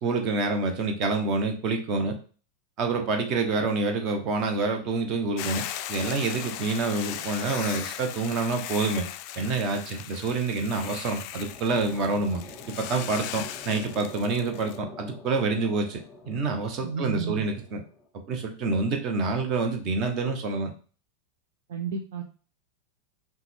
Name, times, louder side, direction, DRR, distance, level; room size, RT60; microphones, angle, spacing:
voice 1, 0.0-2.2 2.8-5.6 5.9-9.1 9.4-12.4 12.8-16.0 16.3-17.8 18.3-20.7, right 3 dB, 35° right, 5 dB, 0.9 m, -27 dB
Hiss / Boiling, 5.4-14.8, left 12 dB, 45° left, 0.3 m, -38 dB
sound 1, 11.0-18.1, left 3 dB, 15° left, 0.7 m, -46 dB
voice 2, 16.8-17.4 21.7-22.2, right 6 dB, 50° right, 3 dB, 0.6 m, -31 dB
5.7 x 2.3 x 3.5 m, 0.39 s
figure-of-eight pair, 90°, 0 cm